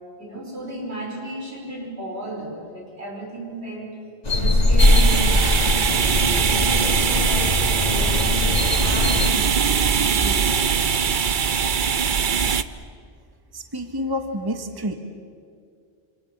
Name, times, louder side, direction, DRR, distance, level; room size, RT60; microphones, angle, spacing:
voice 1, 0.2-4.0 4.3-9.8 10.1-11.2, right 2 dB, 85° right, 0 dB, 5.3 m, -34 dB
sound 1, 4.2-9.3, left 1 dB, 40° left, 1.9 m, -20 dB
sound 2, 4.8-12.6, right 6 dB, 55° right, 0.9 m, -21 dB
voice 2, 13.5-14.9, equal, 20° right, 6 dB, 1.5 m, -28 dB
26.5 x 25.5 x 7.3 m, 2.3 s
omnidirectional pair, 1.1 m